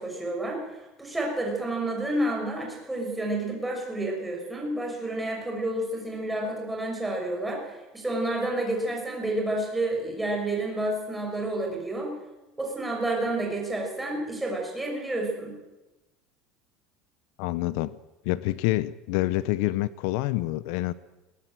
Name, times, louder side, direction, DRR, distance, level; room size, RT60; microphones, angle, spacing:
voice 1, 0.0-12.2 12.6-15.5, right 1 dB, 5° right, 0 dB, 6.1 m, -30 dB
voice 2, 17.4-18.0 18.2-20.9, left 17 dB, 70° left, 17 dB, 0.7 m, -27 dB
21.0 x 18.0 x 7.6 m, 1.0 s
cardioid pair, 155°, 0 cm